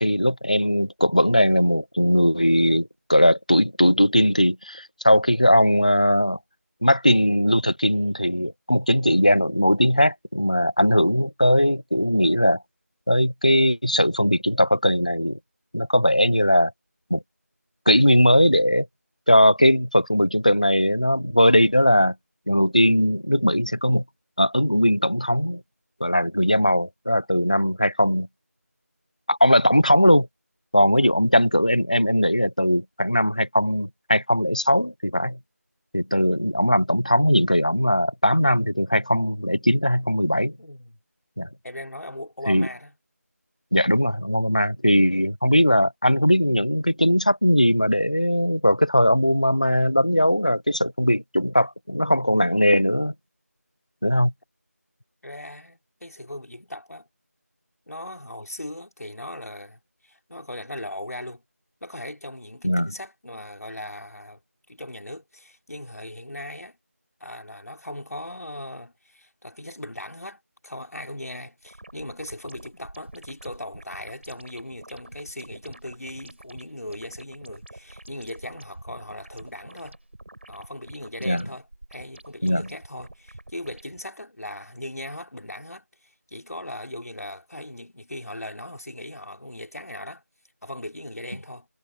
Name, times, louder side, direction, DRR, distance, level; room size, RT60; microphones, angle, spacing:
voice 1, 0.0-6.4 6.8-12.6 13.1-15.4 15.7-16.7 17.1-17.2 17.9-18.9 19.3-22.1 22.5-24.0 24.4-25.6 26.0-28.3 29.3-30.3 30.7-35.4 35.9-40.5 41.4-41.5 42.5-42.7 43.7-53.1 54.0-54.3 62.6-62.9 81.2-81.4 82.4-82.7, equal, 25° left, 0.5 m, -19 dB
voice 2, 30.8-31.1 40.6-41.0 41.6-42.9 55.2-57.1 57.9-61.4 61.8-64.4 64.7-66.8 67.2-80.0 80.5-90.2 90.6-91.7, left 1 dB, 70° left, 4.1 m, -38 dB
sound 1, 71.6-84.0, right 1 dB, 45° right, 6.1 m, -47 dB
figure-of-eight pair, 180°, 9 cm